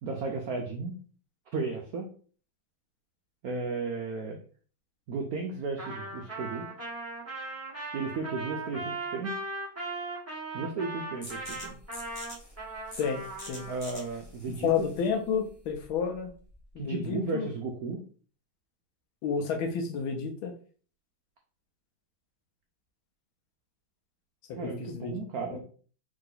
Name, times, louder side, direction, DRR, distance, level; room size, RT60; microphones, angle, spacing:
voice 1, 0.0-0.9 1.5-2.1 3.4-4.4 5.1-6.7 7.9-9.4 10.5-11.8 13.7-14.9 16.8-18.0 24.6-25.6, right 4 dB, 85° right, 2 dB, 0.8 m, -34 dB
Trumpet, 5.8-13.8, right 2 dB, 10° right, 1.0 m, -38 dB
sound 1, 11.2-16.7, left 1 dB, 45° left, 0.4 m, -47 dB
voice 2, 13.0-13.7 14.6-16.3 16.7-17.5 19.2-20.5 24.6-25.2 25.5-25.6, left 6 dB, 80° left, 6 dB, 1.4 m, -30 dB
3.7 x 2.8 x 3.9 m, 0.42 s
omnidirectional pair, 2.3 m